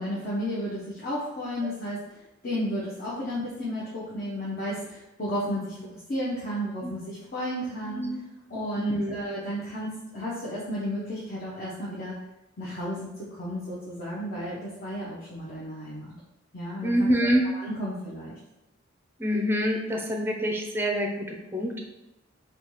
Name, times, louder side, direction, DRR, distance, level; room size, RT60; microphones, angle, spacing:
voice 1, 0.0-5.8 6.1-8.0 8.5-12.2 12.6-16.2 16.5-17.1 17.4-18.3, equal, 45° left, -7 dB, 0.6 m, -33 dB
voice 2, 8.8-9.2 16.8-17.5 19.2-21.8, equal, 10° right, 1 dB, 0.4 m, -26 dB
4.0 x 2.2 x 3.0 m, 0.97 s
head